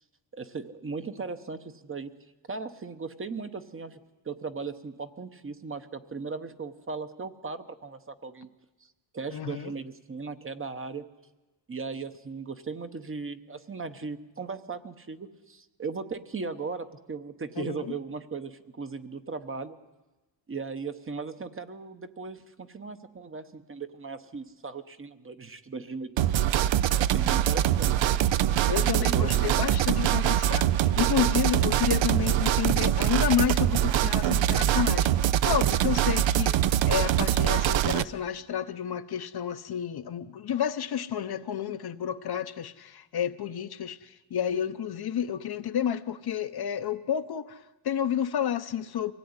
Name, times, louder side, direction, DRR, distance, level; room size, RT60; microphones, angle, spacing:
voice 1, 0.3-2.1 2.5-8.5 8.8-11.1 11.7-19.8 20.5-26.5 27.0-28.0 28.8-29.6, right 4 dB, 25° right, 0.9 m, -37 dB
voice 2, 9.3-9.7 17.6-17.9 28.7-35.1 35.4-49.1, left 9 dB, 55° left, 0.8 m, -30 dB
sound 1, 26.2-38.0, right 11 dB, 75° right, 0.7 m, -24 dB
24.0 x 17.0 x 9.6 m
wide cardioid pair, 180°, 46 cm